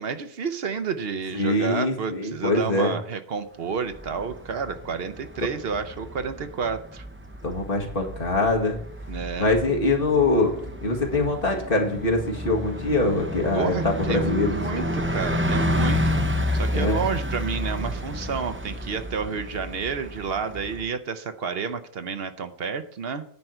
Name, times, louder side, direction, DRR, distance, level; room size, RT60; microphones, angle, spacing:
voice 1, 0.0-7.1 9.1-9.5 13.5-23.2, right 5 dB, 70° right, 9 dB, 1.0 m, -30 dB
voice 2, 1.3-3.0 7.4-8.8 9.4-10.5 10.8-14.9 16.7-17.0, left 2 dB, 60° left, 1 dB, 2.0 m, -23 dB
Bus, 3.8-20.8, left 1 dB, 15° right, 0.6 m, -30 dB
9.8 x 4.6 x 7.8 m, 0.62 s
omnidirectional pair, 1.0 m